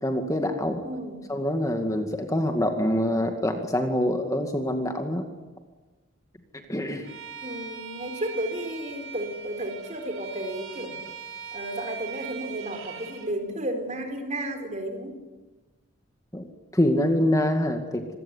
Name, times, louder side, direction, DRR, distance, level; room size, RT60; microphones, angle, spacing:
voice 1, 0.0-0.8 1.3-5.3 6.5-7.1 16.3-16.5 16.7-18.2, left 1 dB, 15° left, 5 dB, 2.1 m, -25 dB
voice 2, 0.8-1.2 7.4-11.0 11.5-15.2, right 1 dB, 35° right, 5 dB, 4.8 m, -33 dB
Bowed string instrument, 7.0-13.3, right 6 dB, 75° right, 5.3 m, -40 dB
26.5 x 21.5 x 9.7 m, 1.2 s
head